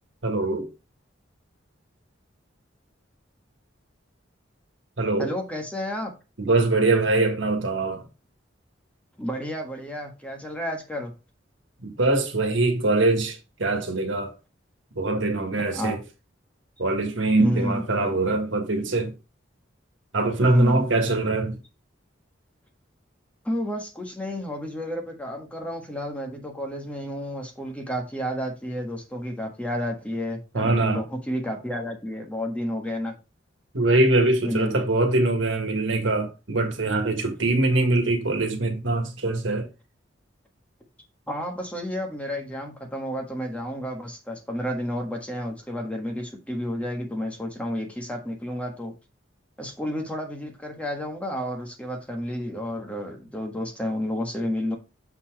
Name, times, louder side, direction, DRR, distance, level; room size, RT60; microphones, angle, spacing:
voice 1, 0.2-0.7 5.0-5.3 6.4-8.1 11.8-14.3 14.9-16.0 16.8-19.1 20.1-21.6 30.5-31.0 33.7-39.7, right 2 dB, 75° right, 1.6 m, -23 dB
voice 2, 5.2-6.1 9.2-11.1 15.7-16.0 17.4-17.9 20.4-20.9 23.4-33.2 34.4-34.9 41.3-48.9 49.6-54.8, equal, 5° left, 1.4 m, -31 dB
6.8 x 4.2 x 4.6 m
head